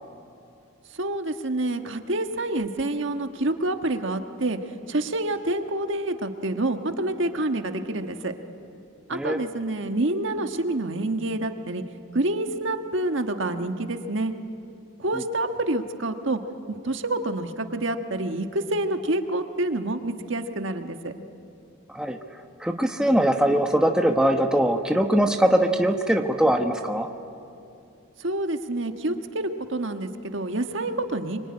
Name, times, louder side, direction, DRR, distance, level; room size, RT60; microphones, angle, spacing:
voice 1, 0.9-4.6 4.9-8.3 9.1-11.8 12.1-14.3 15.0-16.4 16.7-21.1 28.2-31.4, right 2 dB, 65° right, 6 dB, 1.4 m, -27 dB
voice 2, 22.6-27.1, right 1 dB, 5° right, 4 dB, 1.0 m, -21 dB
24.5 x 24.5 x 9.8 m, 2.7 s
head